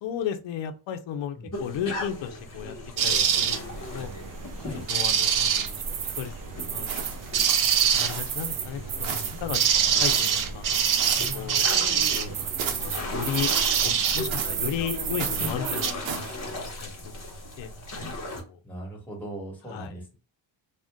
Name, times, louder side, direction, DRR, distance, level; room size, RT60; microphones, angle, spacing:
voice 1, 0.0-2.7 3.0-4.1 4.9-6.9 7.2-7.3 7.9-9.6 10.0-10.7 11.3-11.6 12.1-13.5 13.8-15.9 16.2-16.9 17.3-17.7 18.5-18.6 19.7-20.0, left 9 dB, 70° left, 8 dB, 0.5 m, -35 dB
sound 1, 1.5-18.4, left 1 dB, 40° left, 1.2 m, -37 dB
sound 2, 3.0-15.9, right 8 dB, 45° right, 0.5 m, -26 dB
sound 3, 6.9-7.4 7.9-8.5 9.0-9.5 10.0-10.5 11.0-11.4 12.6-13.0 13.5-13.8 14.3-14.7 15.2-15.5 16.0-16.4, right 7 dB, 80° right, 0.8 m, -35 dB
voice 2, 11.1-11.7 18.3-20.1, equal, 5° left, -2 dB, 1.3 m, -40 dB
2.4 x 2.1 x 3.5 m, 0.33 s
cardioid pair, 80°, 46 cm